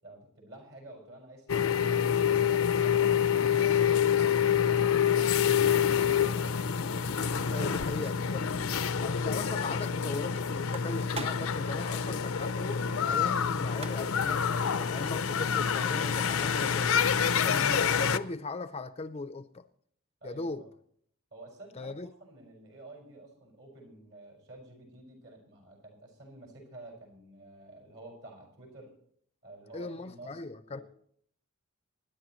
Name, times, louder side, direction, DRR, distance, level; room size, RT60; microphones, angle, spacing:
voice 1, 0.0-6.6 7.5-7.7 20.2-20.7 21.3-21.9 22.2-28.9 29.4-30.4 30.7-30.8, right 2 dB, 60° right, 5.6 m, -50 dB
sound 1, 1.5-18.2, left 7 dB, 70° left, 0.6 m, -27 dB
sound 2, 6.9-8.3 8.6-8.7 9.0-9.1 10.5-11.6 13.4-13.5 13.7-14.3, right 3 dB, 30° right, 0.7 m, -44 dB
voice 2, 7.5-8.4 9.0-17.0 17.4-19.6 20.2-20.6 21.8-22.1 29.7-30.8, left 3 dB, 30° left, 0.5 m, -38 dB
25.0 x 10.5 x 3.1 m
head